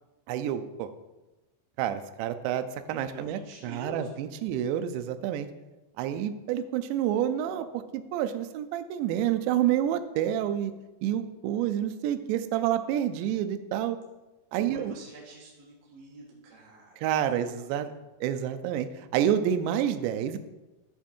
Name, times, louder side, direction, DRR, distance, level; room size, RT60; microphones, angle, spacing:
voice 1, 0.3-0.9 1.8-5.5 6.0-10.7 11.0-14.0 14.5-14.9 17.0-17.9 18.2-20.4, right 10 dB, 85° right, 9 dB, 2.6 m, -28 dB
voice 2, 2.9-4.1 14.5-17.0 17.5-17.9, right 2 dB, 55° right, -4 dB, 1.9 m, -46 dB
13.5 x 4.6 x 4.4 m, 1.1 s
omnidirectional pair, 5.7 m